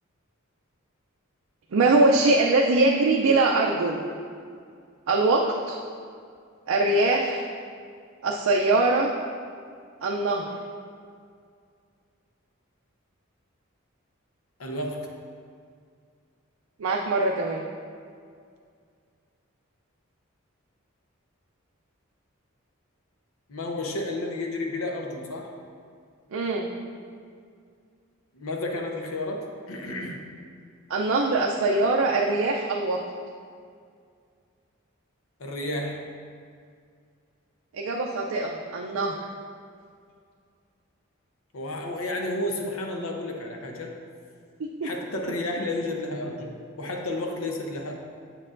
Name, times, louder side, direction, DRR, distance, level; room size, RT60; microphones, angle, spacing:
voice 1, 1.7-4.0 5.1-5.8 6.7-7.4 8.2-9.1 10.0-10.5 16.8-17.6 26.3-26.7 30.9-33.0 37.7-39.2 44.8-44.9, right 2 dB, 75° right, -1 dB, 0.5 m, -22 dB
voice 2, 14.6-15.1 23.5-25.5 28.3-30.2 35.4-36.0 41.5-43.9 44.8-47.9, left 2 dB, 80° left, 2 dB, 0.8 m, -31 dB
7.6 x 6.4 x 2.5 m, 2.2 s
head